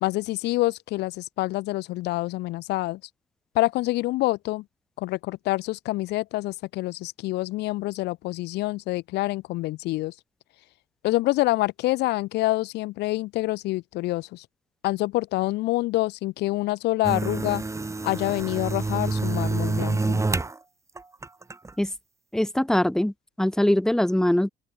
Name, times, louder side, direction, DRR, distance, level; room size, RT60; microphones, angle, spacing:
voice 1, 0.0-3.0 3.6-4.6 5.0-10.1 11.0-14.5 14.8-17.6 18.0-20.2, left 19 dB, 85° left, 1.6 m, -26 dB
sound 1, 17.0-20.6 21.0-21.7, right 3 dB, 15° right, 5.9 m, -27 dB
voice 2, 22.3-24.5, left 1 dB, 5° left, 1.6 m, -22 dB
open air
cardioid pair, 110°, 17 cm